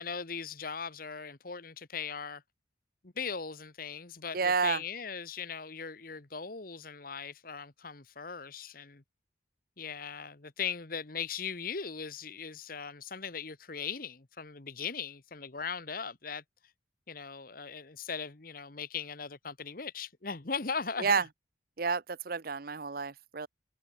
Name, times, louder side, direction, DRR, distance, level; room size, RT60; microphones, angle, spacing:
voice 1, 0.0-2.4 3.0-9.0 9.8-16.4 17.1-21.2, left 6 dB, 50° left, 1.3 m, -39 dB
voice 2, 4.3-4.8 21.0-21.2 21.8-23.5, right 5 dB, 50° right, 0.7 m, -29 dB
head